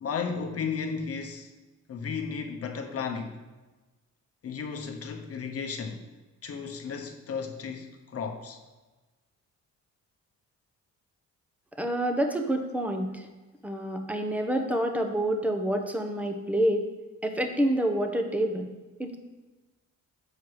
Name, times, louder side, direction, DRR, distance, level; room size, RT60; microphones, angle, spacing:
voice 1, 0.0-1.5 1.9-3.4 4.4-6.0 6.4-8.6, left 5 dB, 50° left, 0.9 m, -34 dB
voice 2, 11.8-13.3 13.6-16.9 17.2-18.7 19.0-19.2, right 1 dB, 5° right, 0.9 m, -27 dB
7.5 x 4.6 x 4.8 m
cardioid pair, 90°, 30 cm